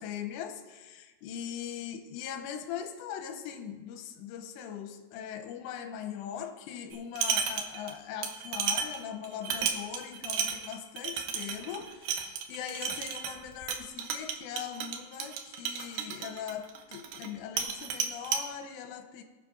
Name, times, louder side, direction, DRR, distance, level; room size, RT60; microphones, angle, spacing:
voice 1, 0.0-19.2, left 9 dB, 80° left, 6 dB, 2.8 m, -40 dB
sound 1, 6.9-7.9 8.2-17.3 17.6-18.4, right 7 dB, 85° right, 2.0 m, -33 dB
22.0 x 7.5 x 2.5 m, 1.3 s
omnidirectional pair, 5.2 m